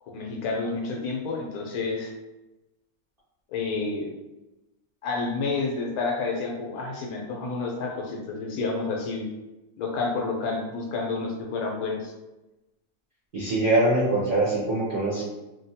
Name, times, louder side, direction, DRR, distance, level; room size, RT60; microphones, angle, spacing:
voice 1, 0.1-2.1 3.5-4.1 5.0-9.3 9.8-12.1, left 3 dB, 80° left, 0 dB, 1.1 m, -29 dB
voice 2, 13.3-15.2, right 2 dB, 45° right, -10 dB, 0.8 m, -23 dB
3.1 x 2.1 x 2.7 m, 1.0 s
omnidirectional pair, 1.6 m